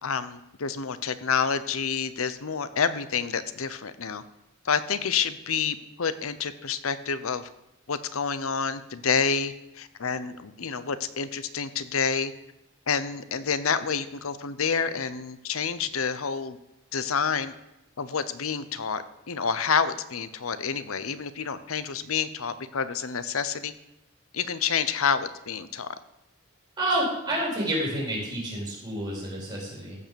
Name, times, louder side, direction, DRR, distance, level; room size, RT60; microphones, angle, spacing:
voice 1, 0.0-4.2 4.6-7.5 7.9-12.3 12.9-16.6 16.9-17.5 18.0-23.7 24.3-25.9, left 6 dB, 85° left, 13 dB, 0.8 m, -28 dB
voice 2, 26.8-30.0, right 1 dB, 20° right, -5 dB, 4.4 m, -29 dB
15.0 x 5.5 x 7.0 m, 0.90 s
head